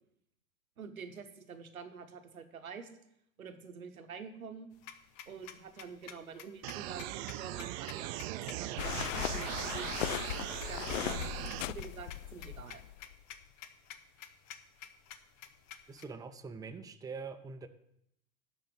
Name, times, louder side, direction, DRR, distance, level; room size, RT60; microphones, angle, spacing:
voice 1, 0.8-2.9 3.4-4.7 5.3-10.2 10.7-11.2 11.7-12.8, right 6 dB, 90° right, 8 dB, 1.0 m, -47 dB
sound 1, 4.7-16.0, left 9 dB, 45° left, 1.0 m, -50 dB
sound 2, 6.6-11.6, right 16 dB, 50° right, 0.6 m, -39 dB
sound 3, 8.8-13.1, left 13 dB, 65° left, 0.5 m, -38 dB
voice 2, 15.9-17.7, right 4 dB, 10° right, 6 dB, 0.7 m, -44 dB
11.5 x 4.3 x 7.5 m, 0.78 s
hypercardioid pair, 90°, 41 cm